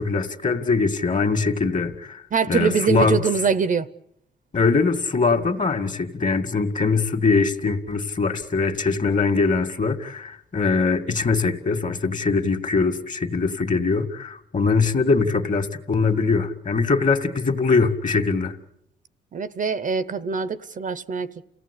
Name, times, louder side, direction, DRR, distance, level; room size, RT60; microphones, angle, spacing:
voice 1, 0.0-3.2 4.5-18.5, left 4 dB, 40° left, 2.2 m, -22 dB
voice 2, 2.3-3.9 19.3-21.5, right 6 dB, 40° right, 0.8 m, -23 dB
29.5 x 17.0 x 8.4 m
cardioid pair, 90°, 20 cm